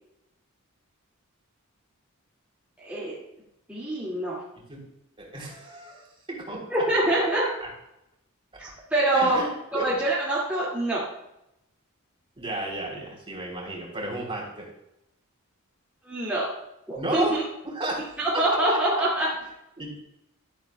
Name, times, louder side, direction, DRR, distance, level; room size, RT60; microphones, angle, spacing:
voice 1, 2.8-3.2 3.7-4.4 6.7-7.4 8.6-9.4 9.8-11.1 16.0-16.5 16.9-17.4 18.2-19.3, right 1 dB, 5° right, -9 dB, 2.3 m, -25 dB
voice 2, 5.2-6.6 7.6-7.7 9.1-9.9 12.4-14.7 17.0-17.4 17.6-18.1 18.7-19.0 19.8-20.0, right 2 dB, 25° right, -2 dB, 3.6 m, -33 dB
12.5 x 12.5 x 2.4 m, 0.84 s
head